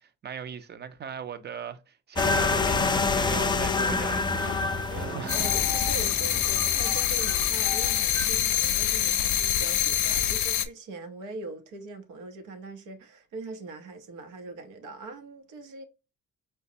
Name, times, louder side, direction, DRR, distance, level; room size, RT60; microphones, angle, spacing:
voice 1, 0.0-5.5 6.2-6.4, right 7 dB, 35° right, 0.5 m, -39 dB
sound 1, 2.2-8.3, left 4 dB, 15° left, 0.3 m, -28 dB
sound 2, 2.2-8.2, right 4 dB, 50° right, 1.2 m, -40 dB
voice 2, 4.9-15.8, right 3 dB, 85° right, 0.8 m, -41 dB
sound 3, 5.3-10.6, left 10 dB, 70° left, 0.5 m, -25 dB
4.9 x 2.2 x 2.6 m
cardioid pair, 90°, 30 cm